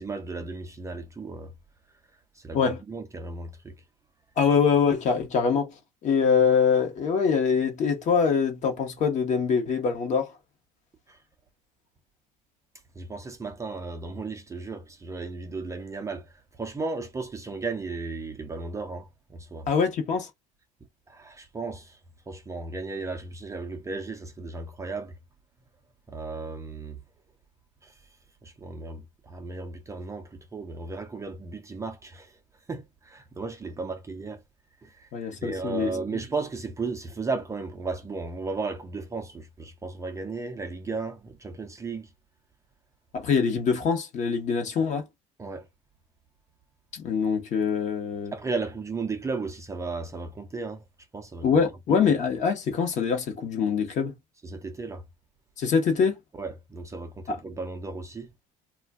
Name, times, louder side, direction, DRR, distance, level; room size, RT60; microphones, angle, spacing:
voice 1, 0.0-1.5 2.1-3.8 11.1-11.2 12.9-19.7 21.1-22.0 22.3-25.2 26.1-27.0 27.8-28.1 28.4-32.4 32.7-34.4 34.8-35.1 35.4-42.1 45.4-45.7 48.3-50.8 51.1-51.5 51.9-52.0 54.4-55.0 56.4-58.3, right 3 dB, 20° right, 0.5 m, -35 dB
voice 2, 4.4-5.7 6.0-10.3 19.7-20.3 35.1-35.9 43.1-45.0 46.9-48.3 51.4-54.1 55.6-56.1 57.3-57.4, left 6 dB, 45° left, 1.0 m, -24 dB
2.4 x 2.2 x 3.4 m
supercardioid pair, 110°, 16 cm